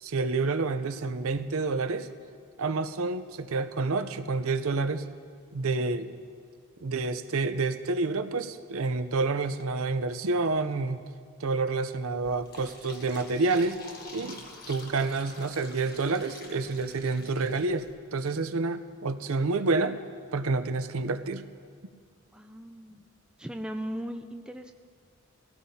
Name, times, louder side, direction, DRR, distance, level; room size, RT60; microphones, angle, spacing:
voice 1, 0.0-2.1 2.6-5.1 5.5-6.1 6.8-11.0 11.4-13.8 14.1-14.4 14.7-20.0 20.3-21.4, right 3 dB, 70° right, 9 dB, 0.6 m, -28 dB
Fill (with liquid), 12.2-17.9, left 2 dB, 40° left, 1.4 m, -47 dB
voice 2, 22.3-23.1 23.4-24.7, equal, 5° right, 4 dB, 0.4 m, -37 dB
23.0 x 16.5 x 2.8 m, 2.1 s
head